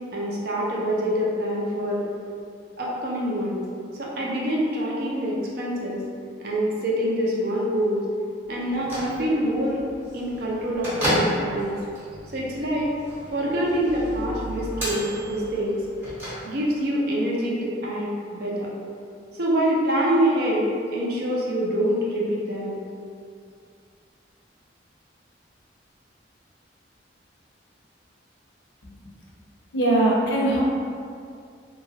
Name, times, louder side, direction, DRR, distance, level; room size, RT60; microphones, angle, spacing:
voice 1, 0.1-2.0 2.8-3.6 3.9-6.0 6.4-8.0 8.5-9.8 10.1-11.8 12.3-12.9 13.3-15.7 16.5-18.7 19.3-22.8, equal, 55° right, -4 dB, 0.5 m, -25 dB
Bell / Microwave oven, 8.6-16.9, equal, 10° right, 0.9 m, -32 dB
voice 2, 29.7-30.6, right 1 dB, 75° left, -4 dB, 0.6 m, -20 dB
2.8 x 2.3 x 2.7 m, 2.3 s
head